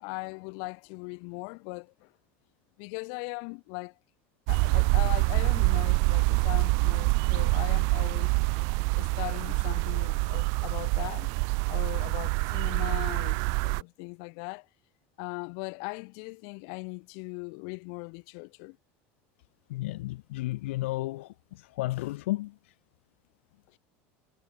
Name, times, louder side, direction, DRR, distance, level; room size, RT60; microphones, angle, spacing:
voice 1, 0.0-2.1 2.8-3.9 4.5-8.3 9.0-11.3 11.7-14.7 15.2-18.8 23.7-23.8, left 40 dB or more, 70° left, 5.2 m, -39 dB
sound 1, 4.5-13.8, right 36 dB, 65° right, 0.9 m, -26 dB
voice 2, 19.7-22.7, left 18 dB, 85° left, 3.0 m, -33 dB
supercardioid pair, 120°, 7 cm